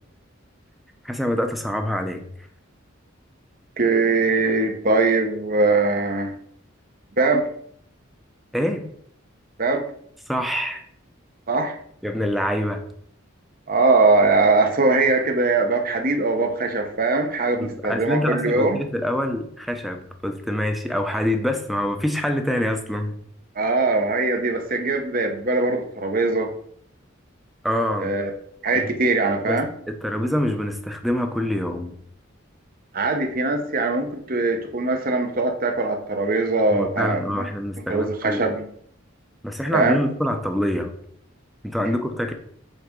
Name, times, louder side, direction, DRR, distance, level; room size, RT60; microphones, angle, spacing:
voice 1, 1.0-2.2 8.5-8.8 10.3-10.8 12.0-12.8 17.6-23.2 27.6-28.1 28.7-28.9 29.5-31.9 36.7-38.4 39.4-40.9 41.6-42.3, left 1 dB, ahead, 5 dB, 0.8 m, -25 dB
voice 2, 3.8-6.3 7.2-7.5 9.6-9.9 11.5-11.7 13.7-18.8 23.6-26.5 28.0-28.3 28.6-29.7 32.9-37.5 37.9-38.6 39.7-40.0, right 3 dB, 45° right, 4 dB, 1.1 m, -21 dB
7.8 x 3.6 x 5.2 m, 0.64 s
head